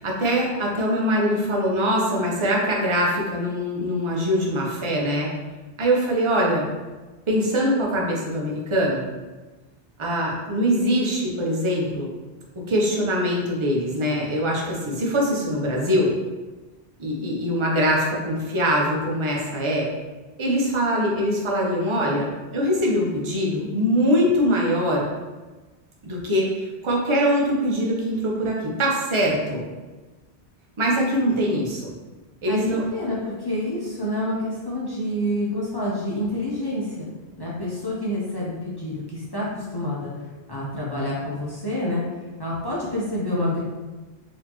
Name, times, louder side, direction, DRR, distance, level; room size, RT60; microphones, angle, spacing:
voice 1, 0.0-5.3 5.8-6.6 7.3-9.0 10.0-12.1 12.6-16.1 17.0-19.9 20.4-25.1 26.0-29.6 30.8-31.9 32.4-32.8, equal, 35° right, -2 dB, 0.6 m, -23 dB
voice 2, 32.9-37.1 37.4-40.1 40.5-42.0 42.4-43.6, left 1 dB, 25° left, -6 dB, 0.6 m, -28 dB
4.0 x 2.8 x 2.9 m, 1.2 s
omnidirectional pair, 1.1 m